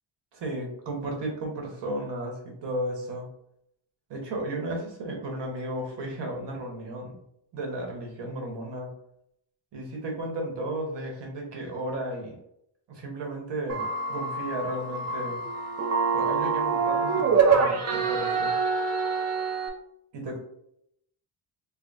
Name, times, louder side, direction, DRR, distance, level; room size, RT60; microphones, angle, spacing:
voice 1, 0.3-3.3 4.1-7.2 7.5-8.9 9.7-12.4 12.9-15.4 16.1-18.5 20.1-20.4, right 1 dB, 60° right, 1 dB, 1.1 m, -34 dB
sound 1, 13.7-19.7, right 5 dB, 35° right, 0.5 m, -25 dB
3.4 x 2.1 x 3.9 m, 0.75 s
wide cardioid pair, 160°, 47 cm